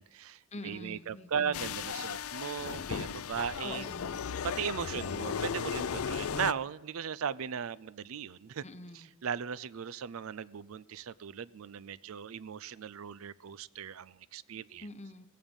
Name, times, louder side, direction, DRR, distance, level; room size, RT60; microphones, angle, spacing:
voice 1, 0.0-3.9 4.4-8.6 8.9-14.9, right 7 dB, 70° right, 19 dB, 0.5 m, -37 dB
voice 2, 0.5-1.8 3.6-4.2 4.9-5.5 8.6-9.1 14.8-15.3, left 2 dB, 30° left, 10 dB, 0.9 m, -45 dB
sound 1, 1.5-6.5, left 7 dB, 75° left, 0.5 m, -36 dB
16.5 x 16.0 x 5.4 m, 1.0 s
head